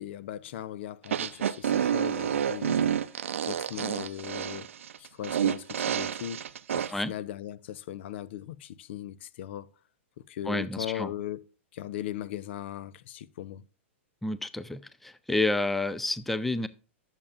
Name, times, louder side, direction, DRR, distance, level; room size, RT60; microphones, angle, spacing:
voice 1, 0.0-3.0 3.5-4.7 5.0-6.4 6.7-9.7 10.3-11.4 11.7-13.6, left 11 dB, 60° left, 0.5 m, -38 dB
sound 1, 1.0-6.9, right 9 dB, 80° right, 0.5 m, -29 dB
voice 2, 10.5-11.1 14.2-16.7, left 2 dB, ahead, 0.4 m, -29 dB
10.5 x 7.2 x 2.4 m
hypercardioid pair, 125°, 7 cm